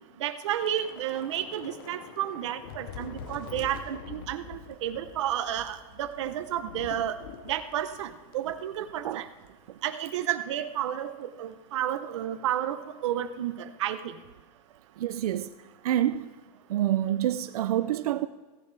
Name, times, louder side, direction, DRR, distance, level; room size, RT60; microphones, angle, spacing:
voice 1, 0.2-7.2 7.5-9.3 9.8-14.2, right 11 dB, 55° right, 0.8 m, -31 dB
Thunder / Rain, 0.6-9.2 9.5-9.6 10.0-10.3, left 7 dB, 35° left, 0.7 m, -45 dB
voice 2, 15.0-15.5 15.8-16.3 16.7-18.3, right 12 dB, 90° right, 0.5 m, -27 dB
16.0 x 10.0 x 3.3 m
supercardioid pair, 175°, 19 cm